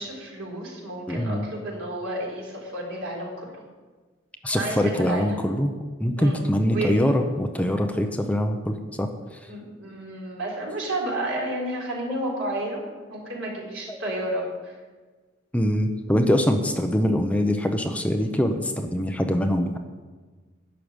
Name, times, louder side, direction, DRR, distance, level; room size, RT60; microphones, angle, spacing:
voice 1, 0.0-3.5 4.5-5.4 6.2-6.4 6.7-6.9 9.5-12.8 13.1-14.7, right 1 dB, 85° right, -3 dB, 4.0 m, -31 dB
voice 2, 1.1-1.4 4.4-5.7 6.0-9.1 13.9-14.2 15.5-19.8, equal, 5° left, 5 dB, 0.7 m, -23 dB
11.0 x 6.6 x 8.9 m, 1.4 s
head